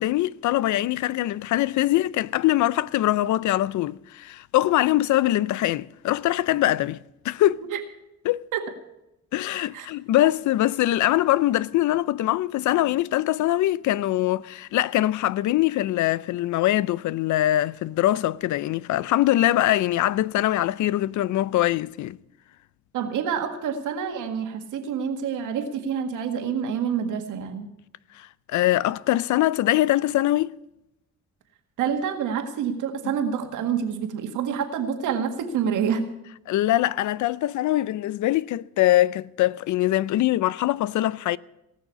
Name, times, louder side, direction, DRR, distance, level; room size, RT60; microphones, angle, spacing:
voice 1, 0.0-7.0 7.2-7.6 8.3-8.5 9.3-22.2 28.2-30.5 33.0-33.2 36.5-41.4, left 15 dB, 75° left, 0.5 m, -23 dB
voice 2, 22.9-27.7 31.8-36.1, right 7 dB, 85° right, 1.9 m, -27 dB
18.0 x 6.4 x 8.3 m
cardioid pair, 90°, 30 cm